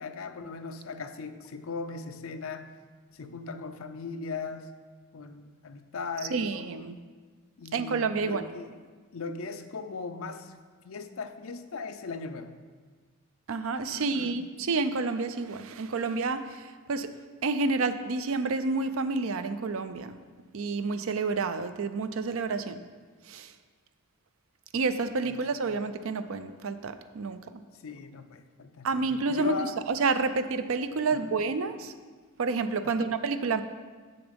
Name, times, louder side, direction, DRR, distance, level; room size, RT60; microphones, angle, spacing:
voice 1, 0.0-2.7 3.1-4.7 5.1-6.5 7.6-8.8 9.1-10.6 10.8-12.5 13.9-14.4 25.2-25.5 27.7-28.9 29.3-29.8 31.1-31.3 32.8-33.1, left 4 dB, 70° left, 9 dB, 0.5 m, -38 dB
voice 2, 6.3-7.0 7.7-8.4 13.5-16.5 16.9-17.1 17.4-20.2 20.5-22.8 23.3-23.5 24.7-27.4 28.8-29.5 29.9-31.9 32.4-33.6, right 4 dB, 65° right, 11 dB, 0.5 m, -29 dB
7.1 x 6.9 x 5.2 m, 1.5 s
head